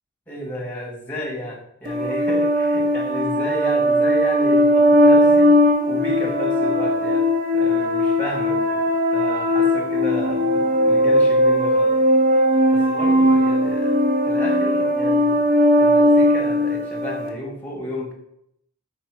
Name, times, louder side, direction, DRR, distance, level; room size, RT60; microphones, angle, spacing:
voice 1, 0.3-5.5 5.9-7.3 7.5-12.0 12.7-18.1, equal, 10° left, -2 dB, 1.6 m, -32 dB
sound 1, 1.8-17.3, equal, 45° right, 0.9 m, -18 dB
5.0 x 4.4 x 4.7 m, 0.75 s
head